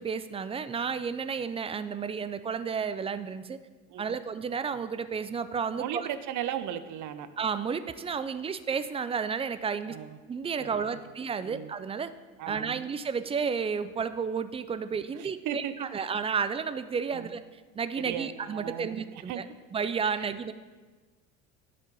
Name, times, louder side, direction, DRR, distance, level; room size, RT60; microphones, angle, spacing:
voice 1, 0.0-3.6 4.0-6.1 7.4-10.0 10.3-12.1 12.5-17.4 17.8-19.4 19.7-20.5, right 6 dB, 15° right, 12 dB, 0.3 m, -32 dB
voice 2, 3.9-4.2 5.8-7.3 9.8-10.2 10.6-11.0 11.4-11.7 12.4-12.9 15.2-16.1 17.1-17.3 18.0-19.4 20.1-20.3, right 10 dB, 50° right, 11 dB, 0.7 m, -37 dB
10.5 x 4.3 x 5.3 m, 1.3 s
hypercardioid pair, 75°, 39 cm